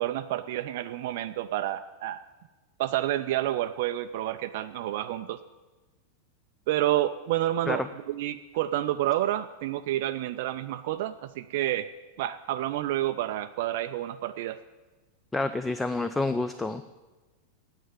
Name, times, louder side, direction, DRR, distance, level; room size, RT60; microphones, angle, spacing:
voice 1, 0.0-2.2 2.8-5.4 6.7-11.9 12.2-14.6, right 13 dB, 50° right, 8 dB, 0.4 m, -29 dB
voice 2, 15.3-16.8, left 2 dB, 10° left, 11 dB, 0.5 m, -28 dB
9.3 x 8.1 x 9.4 m, 1.2 s
figure-of-eight pair, 90°, 0 cm